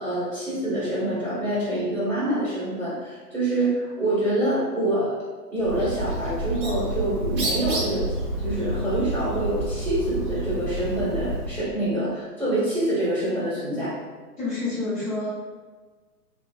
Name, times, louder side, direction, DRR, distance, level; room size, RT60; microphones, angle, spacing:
voice 1, 0.0-5.1 5.5-8.0 8.4-14.0, right 1 dB, ahead, -31 dB, 0.4 m, -26 dB
Bird, 5.6-11.6, right 1 dB, 35° right, 0.7 m, -29 dB
voice 2, 14.4-15.3, left 3 dB, 20° left, -10 dB, 1.0 m, -28 dB
2.5 x 2.3 x 2.6 m, 1.3 s
hypercardioid pair, 135°, 48 cm